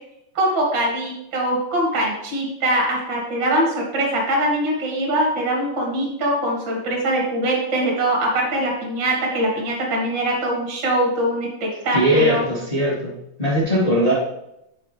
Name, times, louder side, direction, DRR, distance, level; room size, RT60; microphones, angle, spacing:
voice 1, 0.3-12.5, right 1 dB, 80° right, -1 dB, 1.0 m, -22 dB
voice 2, 11.9-14.1, equal, 65° left, -7 dB, 0.4 m, -20 dB
10.5 x 5.0 x 3.3 m, 0.83 s
omnidirectional pair, 5.8 m